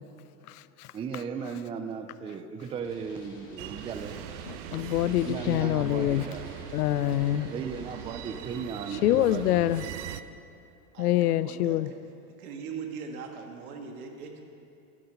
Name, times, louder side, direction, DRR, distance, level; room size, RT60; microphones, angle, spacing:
voice 1, 0.9-4.2 5.2-6.5 7.5-10.0, right 6 dB, 15° right, 0.4 m, -36 dB
sound 1, 2.8-10.0, left 1 dB, 25° left, 3.1 m, -49 dB
sound 2, 3.6-10.2, right 13 dB, 55° right, 0.6 m, -41 dB
voice 2, 4.7-6.3 6.7-7.5 9.0-9.8 11.0-11.9, left 14 dB, 90° left, 0.5 m, -25 dB
voice 3, 10.9-12.0 12.4-14.4, right 6 dB, 75° right, 1.7 m, -40 dB
11.5 x 10.5 x 5.5 m
hypercardioid pair, 115°, 44 cm